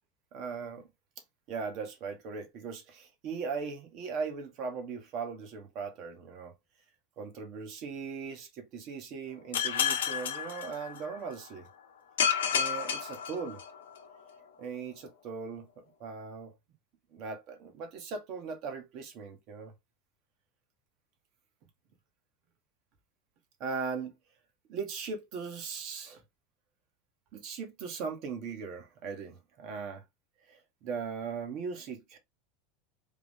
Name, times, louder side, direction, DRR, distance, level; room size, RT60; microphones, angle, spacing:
voice 1, 0.3-0.9 1.5-6.5 7.2-11.7 12.5-13.6 14.6-16.5 17.1-19.7 23.6-24.2 24.7-26.2 27.3-30.0 30.5-32.2, right 5 dB, 55° right, 1.4 m, -39 dB
sound 1, 9.5-11.3 12.2-14.0, left 8 dB, 85° left, 0.7 m, -31 dB
3.6 x 2.5 x 3.5 m
hypercardioid pair, 100°, 0 cm